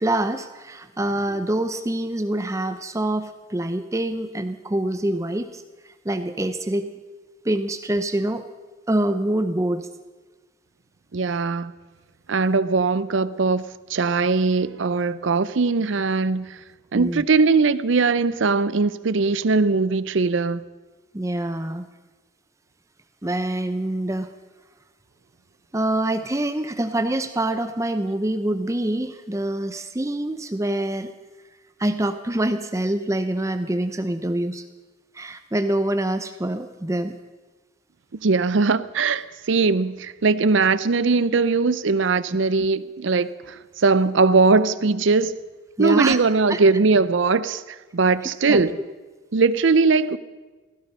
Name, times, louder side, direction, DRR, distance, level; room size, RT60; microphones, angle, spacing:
voice 1, 0.0-6.9 7.4-8.4 8.9-9.9 16.9-17.2 21.1-21.9 23.2-24.3 25.7-31.1 31.8-34.6 35.1-37.2 45.8-46.2 46.5-46.6 48.5-48.6, right 1 dB, 15° right, 0.5 m, -25 dB
voice 2, 11.1-11.7 12.3-13.6 13.9-16.6 16.9-20.6 38.2-45.4 45.8-48.8 49.3-50.2, right 4 dB, 65° right, 0.6 m, -20 dB
16.5 x 15.0 x 5.5 m
head